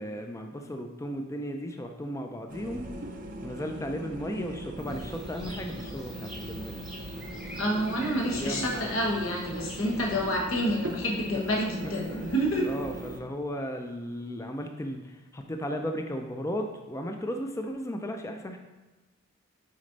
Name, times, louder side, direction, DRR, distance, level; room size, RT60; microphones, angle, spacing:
voice 1, 0.0-2.9 3.4-6.8 8.2-9.0 11.3-11.4 11.8-12.2 12.6-18.6, equal, 15° left, 4 dB, 0.4 m, -35 dB
sound 1, 2.5-13.2, right 1 dB, 40° right, 0.5 m, -41 dB
sound 2, 4.8-13.2, right 1 dB, 40° left, 1.3 m, -46 dB
sound 3, 4.9-10.4, equal, ahead, 0.9 m, -45 dB
voice 2, 7.5-12.7, equal, 80° left, -1 dB, 1.3 m, -28 dB
6.5 x 4.2 x 3.9 m, 1.1 s
head